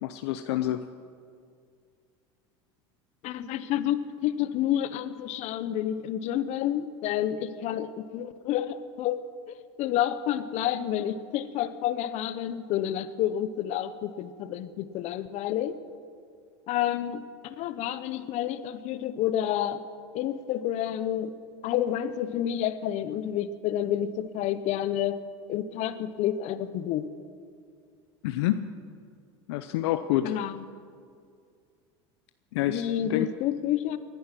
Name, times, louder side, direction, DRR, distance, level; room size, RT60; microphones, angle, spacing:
voice 1, 0.0-0.9 28.2-28.7 29.5-30.3 32.5-33.3, left 13 dB, 80° left, 10 dB, 0.6 m, -28 dB
voice 2, 3.2-9.2 9.5-15.7 16.7-19.8 20.1-21.3 21.6-25.2 25.5-27.0 30.2-30.6 32.7-34.0, left 11 dB, 55° left, 13 dB, 0.9 m, -29 dB
20.0 x 11.0 x 6.1 m, 2.2 s
supercardioid pair, 95°, 14 cm